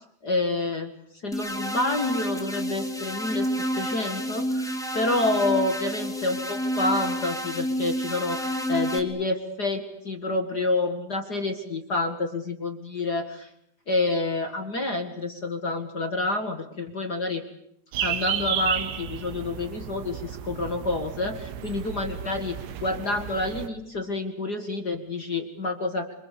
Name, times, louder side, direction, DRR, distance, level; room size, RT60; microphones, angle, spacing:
voice 1, 0.2-0.9 1.2-3.5 3.8-13.5 13.9-17.4 18.0-26.1, left 2 dB, 40° left, 5 dB, 1.4 m, -28 dB
sound 1, 1.3-9.0, equal, ahead, 2.0 m, -29 dB
sound 2, 17.9-23.7, right 10 dB, 90° right, 3.4 m, -33 dB
26.5 x 26.0 x 8.5 m, 0.74 s
omnidirectional pair, 4.5 m